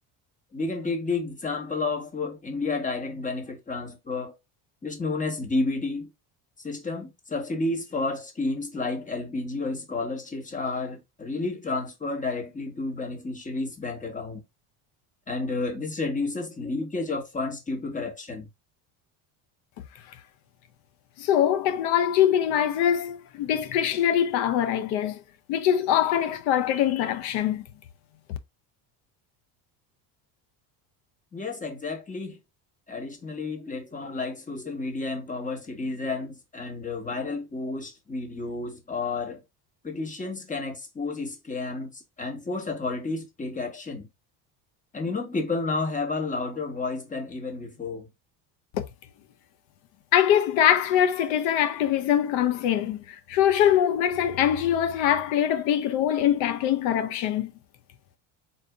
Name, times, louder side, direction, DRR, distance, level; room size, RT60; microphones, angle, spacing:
voice 1, 0.5-4.3 4.8-6.1 6.6-14.4 15.3-18.5 31.3-32.4 32.9-39.4 39.8-44.1 44.9-48.1, left 3 dB, 15° left, 1.2 m, -31 dB
voice 2, 21.2-25.2 25.5-27.6 28.3-28.4 48.7-48.8 50.1-57.5, left 10 dB, 75° left, 0.8 m, -23 dB
4.1 x 2.7 x 3.6 m
supercardioid pair, 105°, 45 cm